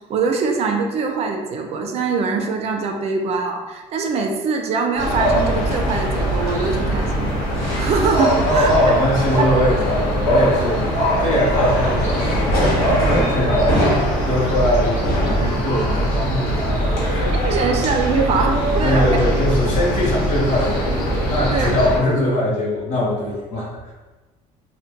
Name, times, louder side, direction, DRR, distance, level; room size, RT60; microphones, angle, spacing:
voice 1, 0.1-8.7 17.4-19.1 21.5-21.7, right 4 dB, 50° right, 3 dB, 0.4 m, -23 dB
sound 1, 5.0-22.0, equal, 90° left, 1.0 m, -20 dB
voice 2, 8.5-10.9 11.2-13.9 14.2-17.3 18.8-23.9, left 1 dB, 60° left, -4 dB, 1.0 m, -21 dB
2.8 x 2.1 x 3.5 m, 1.3 s
cardioid pair, 135°, 14 cm